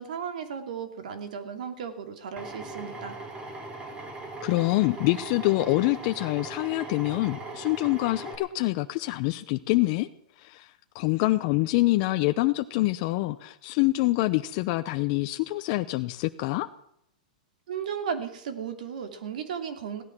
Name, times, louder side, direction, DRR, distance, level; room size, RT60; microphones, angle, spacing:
voice 1, 0.0-3.2 17.7-20.0, right 7 dB, 75° right, 7 dB, 2.8 m, -35 dB
Drill, 2.4-8.4, right 2 dB, 20° right, 3.8 m, -39 dB
voice 2, 4.4-10.1 10.4-10.7 10.9-16.7, left 19 dB, 45° left, 8 dB, 0.7 m, -25 dB
16.5 x 12.5 x 6.1 m, 0.73 s
hypercardioid pair, 135°, 4 cm